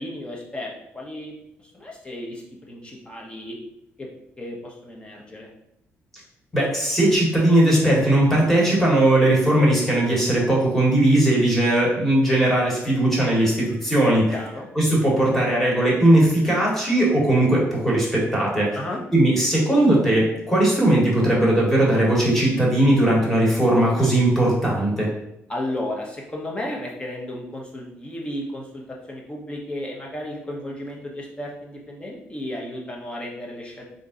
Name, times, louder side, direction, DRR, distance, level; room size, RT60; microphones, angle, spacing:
voice 1, 0.0-1.3 1.6-3.6 4.0-4.1 4.4-5.5 14.3-14.7 18.7-19.0 25.5-33.9, left 1 dB, 20° left, -1 dB, 0.9 m, -33 dB
voice 2, 6.5-14.3 14.7-18.8 19.1-25.1, right 1 dB, 5° left, -4 dB, 1.4 m, -19 dB
3.6 x 2.6 x 3.8 m, 0.81 s
cardioid pair, 120°, 5 cm